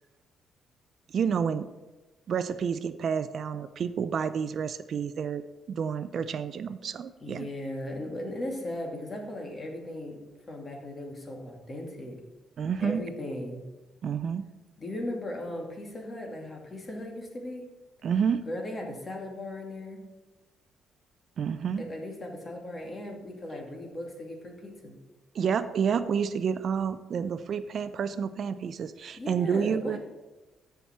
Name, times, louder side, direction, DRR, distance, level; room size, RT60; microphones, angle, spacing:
voice 1, 1.1-1.7 2.3-7.5 12.6-13.0 14.0-14.5 18.0-18.4 21.4-21.9 25.3-30.0, right 7 dB, 60° right, 13 dB, 0.5 m, -29 dB
voice 2, 7.2-10.2 10.5-12.2 12.8-13.6 14.8-17.7 18.5-20.0 21.8-25.0 29.2-30.0, left 1 dB, 30° left, 1 dB, 2.4 m, -37 dB
14.5 x 5.8 x 4.5 m, 1.1 s
cardioid pair, 90°, 0 cm